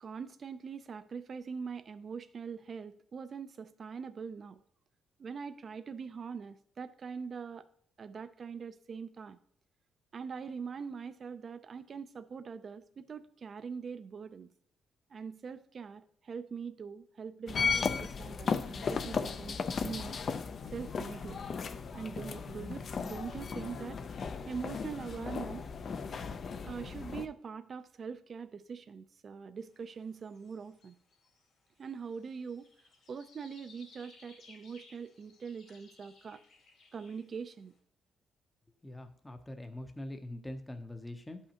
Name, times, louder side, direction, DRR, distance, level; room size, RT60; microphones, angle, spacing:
voice 1, 0.0-4.6 5.2-7.7 8.0-9.4 10.1-14.5 15.1-20.2 20.7-21.4 21.9-24.0 24.5-25.6 26.6-31.0 31.8-32.7 33.1-36.4 36.9-37.7, right 6 dB, 45° right, 11 dB, 0.4 m, -43 dB
sound 1, 17.5-27.3, left 5 dB, 50° left, 0.6 m, -36 dB
sound 2, 29.6-37.6, left 3 dB, 70° left, 2.6 m, -61 dB
voice 2, 38.8-41.4, left 1 dB, 10° left, 6 dB, 0.7 m, -43 dB
11.0 x 5.6 x 2.9 m, 0.63 s
cardioid pair, 90°, 0 cm